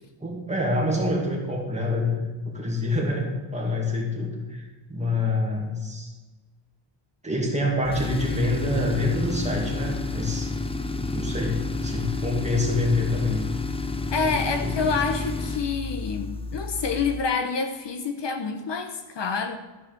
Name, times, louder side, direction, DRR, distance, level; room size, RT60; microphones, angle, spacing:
voice 1, 0.2-4.6 4.9-6.1 7.2-10.5 10.9-13.4 14.2-14.7, left 2 dB, 15° right, 2.2 m, -26 dB
Tools, 7.8-17.3, left 3 dB, 15° left, 0.4 m, -30 dB
voice 2, 14.1-19.6, left 5 dB, 60° left, 0.9 m, -27 dB
13.0 x 4.8 x 7.7 m
wide cardioid pair, 175°, 49 cm